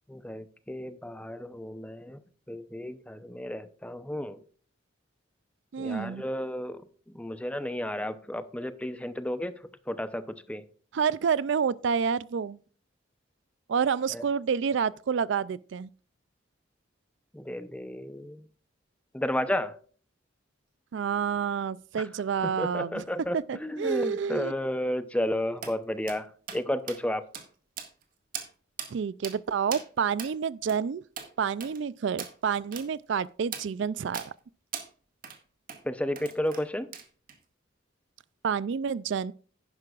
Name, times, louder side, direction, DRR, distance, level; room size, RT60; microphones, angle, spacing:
voice 1, 0.1-2.2 2.5-4.4 5.8-6.8 7.1-9.5 9.9-10.7 14.1-14.2 17.3-18.4 19.1-19.7 22.4-27.2 35.8-36.9, left 1 dB, 5° left, 0.7 m, -32 dB
voice 2, 5.7-6.2 10.9-12.6 13.7-15.9 20.9-23.0 23.3-24.5 28.9-31.0 31.4-34.3 38.4-39.3, right 6 dB, 65° right, 0.4 m, -29 dB
sound 1, 25.6-25.7 26.1-26.2 26.5-26.6 26.9-27.0 27.3-27.5 27.8-28.0 28.3-28.5 28.8-28.9 29.2-29.4 29.7-29.9 30.2-30.3 30.7-30.8 31.2-31.3 31.6-31.8 32.2-32.3 32.7-32.9 33.5-33.7 34.1-34.3 34.7-34.9 35.2-35.4 35.7-35.8 36.2-36.6 36.9-37.4, right 7 dB, 45° right, 1.8 m, -39 dB
11.5 x 10.5 x 2.4 m
head